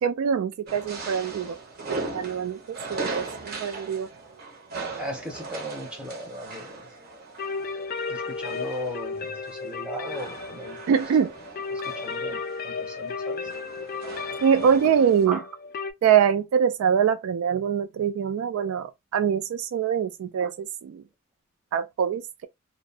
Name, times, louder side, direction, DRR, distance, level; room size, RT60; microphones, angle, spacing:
voice 1, 0.0-1.6 2.1-4.1 10.9-11.3 14.4-15.4 16.0-21.0 21.7-22.5, right 7 dB, 80° right, 0.3 m, -24 dB
sound 1, 0.7-15.3, right 3 dB, 45° right, 0.6 m, -39 dB
voice 2, 5.0-6.9 8.1-11.0 11.7-13.5 15.3-15.5, equal, 5° right, 0.6 m, -38 dB
sound 2, 7.4-15.9, left 4 dB, 45° left, 0.3 m, -34 dB
2.5 x 2.0 x 2.7 m
head